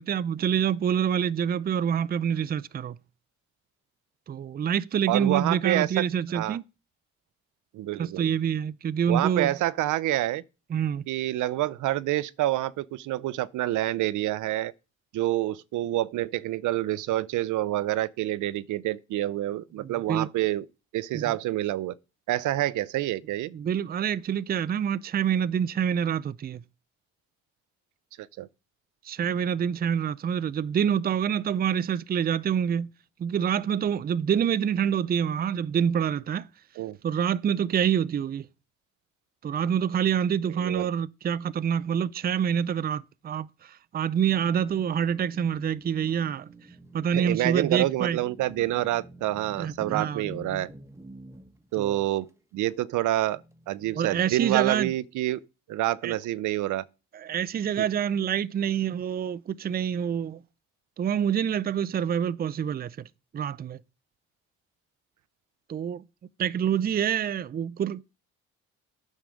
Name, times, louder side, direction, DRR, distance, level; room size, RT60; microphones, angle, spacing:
voice 1, 0.0-3.0 4.3-6.6 8.0-9.5 10.7-11.0 19.8-20.3 21.1-21.2 23.5-26.6 29.1-32.9 33.2-36.5 37.0-38.5 39.4-46.5 46.9-48.2 49.6-50.2 51.8-52.0 53.9-54.9 56.0-56.1 57.1-60.4 61.0-63.1 63.3-63.8 65.7-66.0 66.4-68.0, right 8 dB, 30° right, 0.4 m, -26 dB
voice 2, 5.1-5.9 6.3-6.6 7.7-8.3 9.1-10.4 11.1-14.7 15.1-20.6 20.9-21.9 22.3-23.5 28.2-28.5 36.8-37.0 40.6-40.9 47.1-50.7 51.7-52.3 52.5-53.4 53.7-55.4 55.7-56.8 57.8-57.9, right 15 dB, 80° right, 0.6 m, -27 dB
sound 1, 44.1-51.7 52.7-52.8 53.3-54.3, equal, 10° right, 1.3 m, -47 dB
9.2 x 6.5 x 6.3 m
cardioid pair, 90°, 30 cm